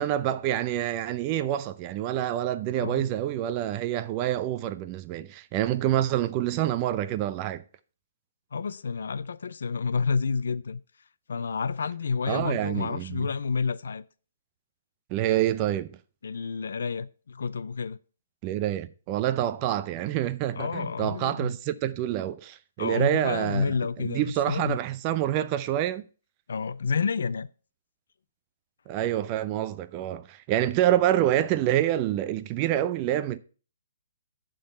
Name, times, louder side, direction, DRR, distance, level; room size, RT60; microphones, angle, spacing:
voice 1, 0.0-7.6 12.3-13.3 15.1-15.9 18.4-26.1 28.9-33.4, right 12 dB, 25° right, 0.4 m, -27 dB
voice 2, 2.8-3.1 8.5-10.8 11.3-14.0 16.2-18.0 20.5-21.5 22.8-24.8 26.5-27.5, left 5 dB, 75° left, 0.5 m, -29 dB
11.0 x 3.9 x 6.5 m
hypercardioid pair, 165°, 0 cm